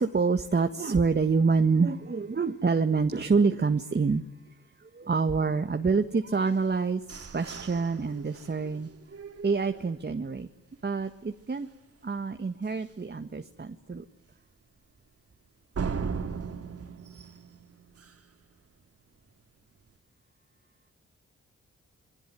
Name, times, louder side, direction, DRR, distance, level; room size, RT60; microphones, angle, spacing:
voice 1, 0.0-4.2 4.8-7.0 7.3-8.9 9.4-10.5 10.8-11.7 12.0-14.0, right 4 dB, 35° right, 1.7 m, -26 dB
sound 1, 6.5-10.4 10.8-10.9 11.3-11.7 12.1-12.2 12.7-12.8 15.7-18.4, right 5 dB, 55° right, 2.8 m, -38 dB
27.5 x 21.5 x 9.3 m
cardioid pair, 75°, 29 cm